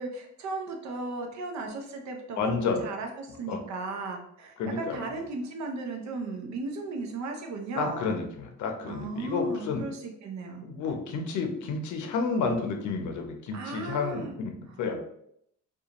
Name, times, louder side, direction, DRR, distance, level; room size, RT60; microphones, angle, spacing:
voice 1, 0.0-8.1 8.8-10.6 13.5-14.4 14.7-14.8, right 3 dB, 65° right, 3 dB, 0.6 m, -36 dB
voice 2, 2.4-2.8 3.5-3.6 4.6-5.0 7.8-9.8 10.6-14.5 14.8-15.0, left 4 dB, 75° left, 4 dB, 0.6 m, -30 dB
2.5 x 2.3 x 2.8 m, 0.72 s
cardioid pair, 90°, 30 cm